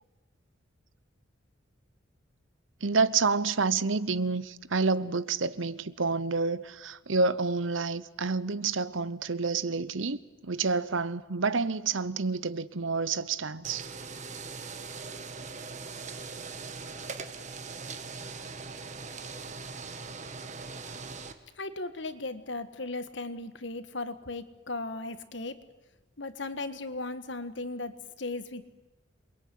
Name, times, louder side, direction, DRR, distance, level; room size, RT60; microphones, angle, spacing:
voice 1, 2.8-13.9, right 4 dB, 75° right, 1.0 m, -29 dB
sound 1, 13.6-21.3, right 4 dB, 35° right, 1.6 m, -41 dB
voice 2, 21.6-25.6 26.2-28.7, left 2 dB, 65° left, 1.7 m, -37 dB
28.0 x 22.5 x 9.5 m
head